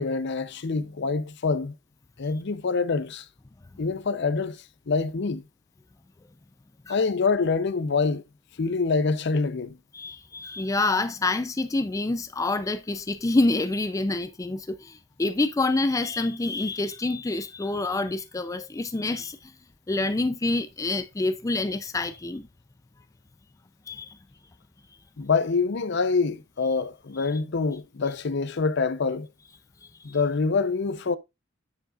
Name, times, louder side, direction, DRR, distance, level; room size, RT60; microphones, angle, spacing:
voice 1, 0.0-1.7 2.2-3.2 3.8-4.6 4.9-5.4 6.9-8.2 8.6-9.8 25.2-29.3 30.0-31.2, left 4 dB, 60° left, 0.6 m, -25 dB
voice 2, 9.9-19.5 19.9-22.5 23.9-24.2 27.2-27.3 30.1-30.2, left 2 dB, 15° left, 0.4 m, -27 dB
7.7 x 7.2 x 2.4 m
head